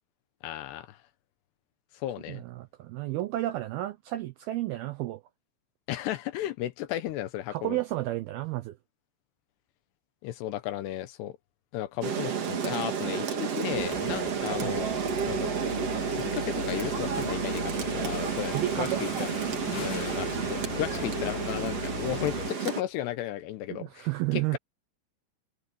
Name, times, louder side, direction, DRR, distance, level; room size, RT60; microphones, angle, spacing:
voice 1, 0.4-1.0 1.9-2.4 5.9-7.8 10.2-11.4 11.7-14.9 15.3-15.6 16.1-19.3 19.8-24.6, left 13 dB, 75° left, 2.8 m, -34 dB
voice 2, 2.3-5.2 7.5-8.8 14.6-14.8 18.5-19.0 23.7-24.6, right 16 dB, 80° right, 2.2 m, -32 dB
Rain, 12.0-22.8, right 7 dB, 45° right, 2.2 m, -31 dB
sound 1, 13.7-22.5, left 6 dB, 60° left, 4.4 m, -38 dB
omnidirectional pair, 5.4 m